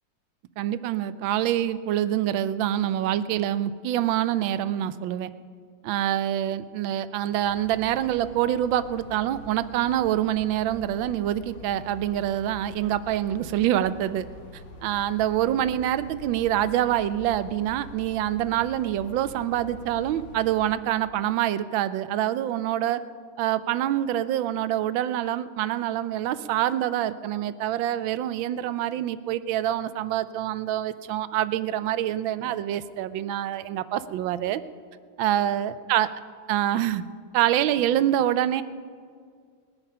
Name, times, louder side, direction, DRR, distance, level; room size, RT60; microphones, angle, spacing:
voice 1, 0.6-5.3 5.8-14.3 14.8-23.0 23.4-34.6 35.2-36.1 36.5-37.0 37.3-38.6, right 12 dB, 85° right, 14 dB, 1.4 m, -26 dB
sound 1, 7.4-20.7, left 1 dB, 85° left, 2.4 m, -45 dB
20.0 x 9.9 x 5.6 m, 2.1 s
omnidirectional pair, 2.1 m